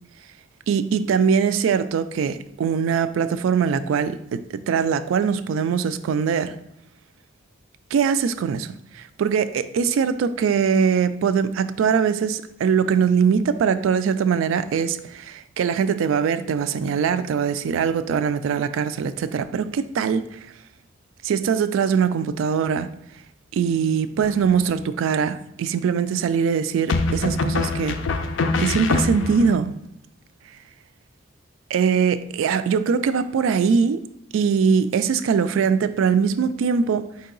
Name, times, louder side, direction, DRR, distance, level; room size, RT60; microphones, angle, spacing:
voice 1, 0.7-6.5 7.9-20.4 21.2-22.9 23.5-28.0 28.6-29.7 31.7-34.0 34.3-37.1, right 6 dB, 85° right, 0.3 m, -22 dB
sound 1, 24.2-24.8 26.9-29.6, left 3 dB, 70° left, 0.4 m, -24 dB
4.6 x 2.8 x 3.8 m
head